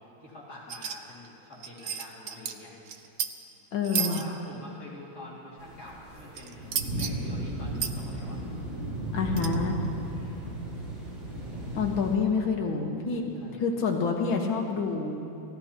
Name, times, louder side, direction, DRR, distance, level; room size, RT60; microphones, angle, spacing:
voice 1, 0.0-2.7 3.0-3.1 3.9-8.4 10.0-10.4 13.3-13.6, left 2 dB, 50° left, -6 dB, 3.0 m, -46 dB
sound 1, 0.7-1.0 1.2-1.3 1.5-2.5 2.9-3.3 3.8-4.2 6.4-7.1 7.8-7.9 9.4-9.6, right 8 dB, 70° right, 0.7 m, -31 dB
voice 2, 3.7-4.2 9.1-9.8 11.7-13.2 13.6-15.2, left 5 dB, 75° left, 1 dB, 2.1 m, -27 dB
sound 2, 5.6-12.1, right 1 dB, 85° right, 4.3 m, -35 dB
28.5 x 15.5 x 2.9 m, 2.7 s
omnidirectional pair, 2.2 m